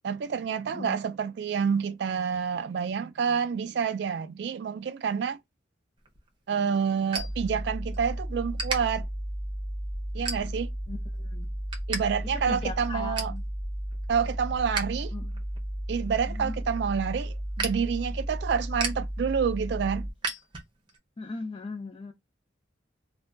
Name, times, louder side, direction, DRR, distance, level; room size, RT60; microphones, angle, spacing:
voice 1, 0.0-5.4 6.5-9.1 10.1-10.7 11.9-13.3 14.1-15.1 15.9-20.1, right 6 dB, 60° right, 0.3 m, -28 dB
voice 2, 0.7-1.0 10.9-11.5 12.3-13.4 15.1-15.3 16.3-16.6 21.2-22.1, left 3 dB, 30° left, 0.4 m, -38 dB
sound 1, 6.0-8.0 8.3-8.8 9.3-9.6 10.1-10.8 11.2-12.0 12.3-12.4 12.8-13.4 13.9-14.8 15.2-21.0, right 3 dB, 25° right, 0.6 m, -36 dB
sound 2, 7.2-20.1, equal, 65° left, 1.0 m, -34 dB
2.2 x 2.2 x 3.7 m
head